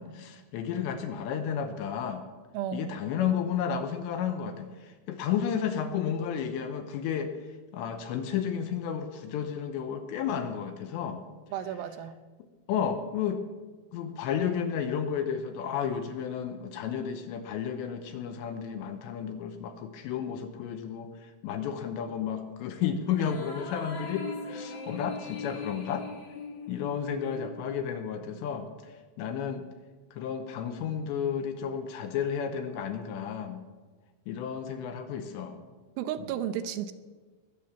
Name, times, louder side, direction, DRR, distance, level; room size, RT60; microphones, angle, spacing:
voice 1, 0.0-2.2 2.7-7.4 7.7-11.2 12.7-13.4 13.9-26.1 26.7-29.7 30.1-33.6 34.3-35.6 36.2-36.3, left 8 dB, 80° left, 7 dB, 2.9 m, -32 dB
voice 2, 2.5-2.9 11.5-12.2 36.0-36.9, right 10 dB, 80° right, 8 dB, 3.2 m, -33 dB
sound 1, 23.0-27.8, left 3 dB, 55° left, 2.2 m, -40 dB
21.5 x 7.6 x 7.0 m, 1.3 s
omnidirectional pair, 5.6 m